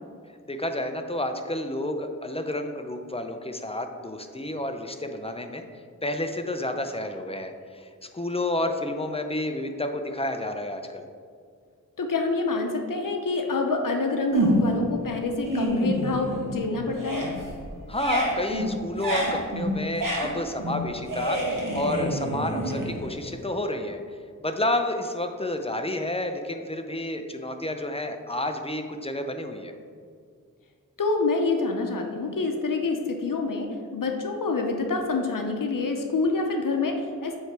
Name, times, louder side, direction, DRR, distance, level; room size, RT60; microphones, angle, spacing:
voice 1, 0.5-5.6 6.0-7.9 8.1-11.1 17.9-24.0 24.4-29.7, left 1 dB, 20° left, 6 dB, 0.5 m, -30 dB
voice 2, 12.0-17.3 31.0-37.4, left 3 dB, 75° left, 3 dB, 0.7 m, -27 dB
sound 1, 14.3-14.9 15.3-16.6 16.9-23.4, right 1 dB, 75° right, 1.4 m, -28 dB
7.7 x 3.3 x 4.6 m, 2.2 s
wide cardioid pair, 70°, 33 cm